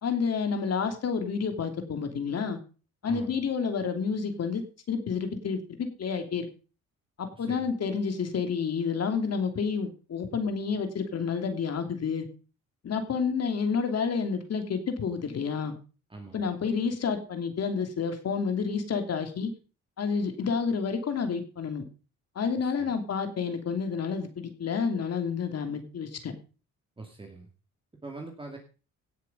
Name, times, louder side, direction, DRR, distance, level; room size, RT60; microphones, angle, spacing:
voice 1, 0.0-2.6 3.0-6.5 7.2-12.3 12.8-15.7 16.3-19.5 20.0-21.8 22.3-26.3, left 5 dB, 55° left, 7 dB, 2.9 m, -29 dB
voice 2, 3.1-3.4 7.4-7.7 16.1-16.4 22.6-22.9 27.0-27.5 28.0-28.6, right 3 dB, 15° right, 2 dB, 2.5 m, -43 dB
17.0 x 6.7 x 5.5 m, 0.36 s
cardioid pair, 90°, 30 cm